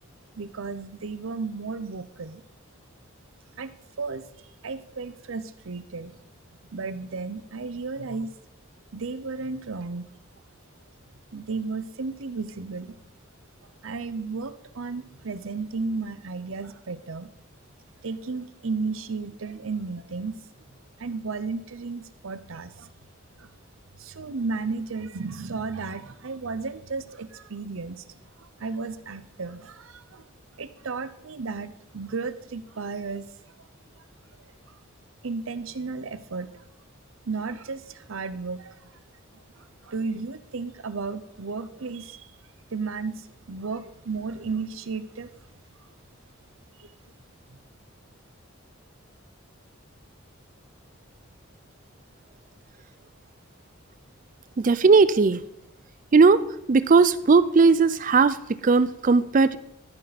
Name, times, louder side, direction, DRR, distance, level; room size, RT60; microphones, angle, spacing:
voice 1, 0.4-2.4 3.6-3.7 4.0-6.1 6.7-8.3 8.9-10.1 11.3-13.0 13.8-17.3 18.0-20.3 20.7-22.9 23.4-23.5 24.0-30.2 30.6-33.3 33.6-33.7 35.2-36.6 37.3-39.0 39.6-42.3 42.7-45.3 46.8-46.9 47.5-47.6, right 4 dB, 75° right, 13 dB, 0.7 m, -34 dB
voice 2, 54.6-55.4 56.1-56.4 56.7-59.6, right 4 dB, 40° right, 16 dB, 0.4 m, -18 dB
13.5 x 6.7 x 4.1 m, 0.85 s
head